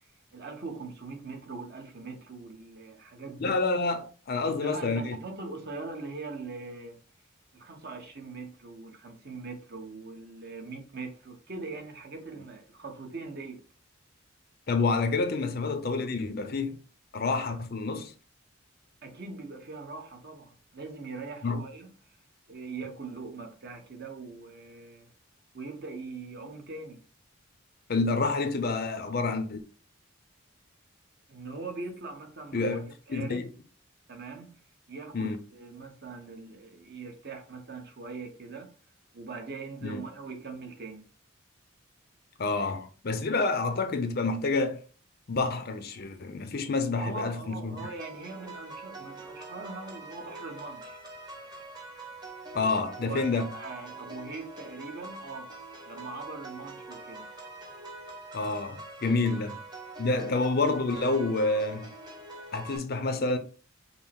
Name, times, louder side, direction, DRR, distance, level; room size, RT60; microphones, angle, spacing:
voice 1, 0.3-3.6 4.4-7.0 7.5-13.6 19.0-21.9 22.5-25.1 25.5-27.0 31.3-33.5 34.1-34.6 34.9-38.7 39.1-41.1 46.9-51.0 52.8-55.5 55.9-57.3 60.2-60.3, right 3 dB, 50° right, 0.9 m, -41 dB
voice 2, 3.4-5.2 14.7-16.8 17.1-18.1 21.4-21.6 27.9-29.6 32.5-33.5 35.1-35.4 39.8-40.0 42.4-44.8 45.3-47.9 52.5-53.5 58.3-59.6 60.0-61.9 62.5-63.4, left 3 dB, 50° left, 0.5 m, -28 dB
sound 1, 47.8-62.8, right 2 dB, 20° right, 0.8 m, -44 dB
5.3 x 2.0 x 4.4 m
head